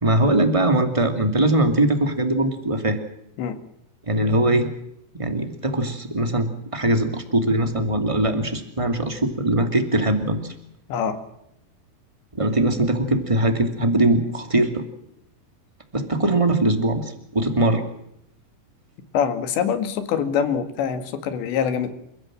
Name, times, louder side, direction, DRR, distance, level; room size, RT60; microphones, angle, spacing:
voice 1, 0.0-3.0 4.0-4.7 5.1-10.5 12.3-14.8 15.9-17.8, right 1 dB, 15° right, 6 dB, 1.2 m, -21 dB
voice 2, 19.1-21.9, left 7 dB, 85° left, 9 dB, 4.2 m, -24 dB
29.0 x 16.0 x 7.6 m, 0.78 s
omnidirectional pair, 4.9 m